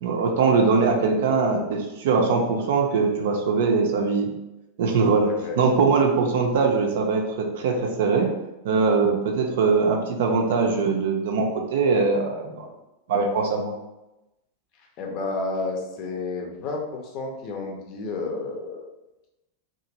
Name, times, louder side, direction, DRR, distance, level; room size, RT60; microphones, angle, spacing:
voice 1, 0.0-4.3 4.8-5.3 5.6-8.3 8.6-12.7 13.1-13.7, right 4 dB, 55° right, 2 dB, 0.4 m, -22 dB
voice 2, 5.2-5.6 15.0-18.9, left 3 dB, 40° left, 1 dB, 0.6 m, -31 dB
2.8 x 2.4 x 2.7 m, 0.97 s
figure-of-eight pair, 90°, 0 cm